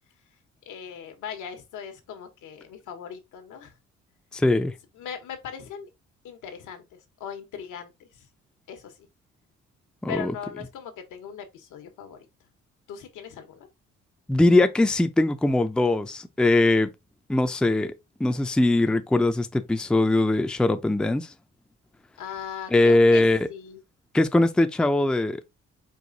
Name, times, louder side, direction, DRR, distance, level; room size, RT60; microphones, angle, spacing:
voice 1, 0.7-3.7 5.0-5.9 6.2-8.3 8.7-9.1 10.1-12.3 12.9-13.7 22.2-23.8, left 8 dB, 85° left, 1.2 m, -39 dB
voice 2, 4.3-4.7 10.0-10.3 14.3-16.9 17.3-17.9 18.2-21.3 22.7-23.5 24.1-25.4, left 2 dB, 5° left, 0.4 m, -21 dB
4.7 x 2.4 x 3.9 m
cardioid pair, 90°, 30 cm